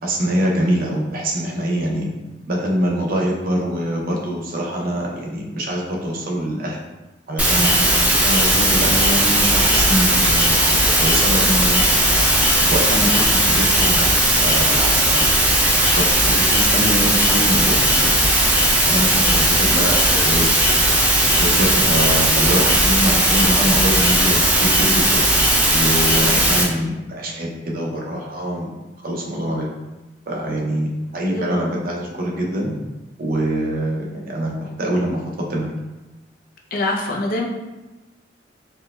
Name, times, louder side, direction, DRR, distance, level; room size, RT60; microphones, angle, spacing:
voice 1, 0.0-2.1 2.5-6.8 7.3-7.8 8.2-12.2 12.7-15.5 15.9-18.3 18.9-20.5 21.4-25.2 25.7-28.7 29.0-29.7 30.3-32.7 33.2-35.7, equal, 55° right, -2 dB, 0.6 m, -24 dB
sound 1, 7.4-26.6, right 1 dB, 10° right, 0.4 m, -17 dB
voice 2, 20.1-20.5 31.3-31.6 36.7-37.5, left 2 dB, 55° left, 0 dB, 0.5 m, -25 dB
4.3 x 2.1 x 2.3 m, 1.1 s
head